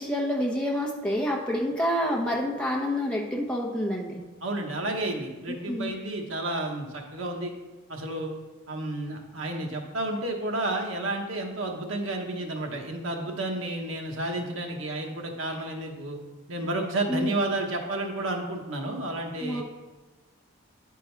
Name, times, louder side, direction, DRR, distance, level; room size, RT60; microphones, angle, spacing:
voice 1, 0.0-4.2 5.7-5.9 17.1-17.3 19.4-19.6, equal, 5° left, -2 dB, 0.9 m, -28 dB
voice 2, 4.4-7.5 7.9-8.3 8.7-16.2 16.5-19.6, right 2 dB, 80° right, 2 dB, 1.0 m, -31 dB
9.6 x 3.7 x 4.5 m, 1.2 s
head